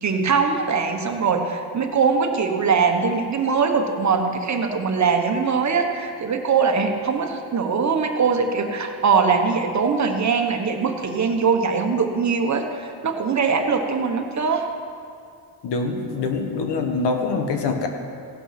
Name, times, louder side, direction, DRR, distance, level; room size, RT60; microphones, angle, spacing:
voice 1, 0.0-14.7, right 5 dB, 45° right, 4 dB, 1.2 m, -22 dB
voice 2, 15.6-17.9, left 4 dB, 80° left, 4 dB, 1.3 m, -24 dB
16.5 x 5.7 x 5.9 m, 2.3 s
cardioid pair, 110°, 41 cm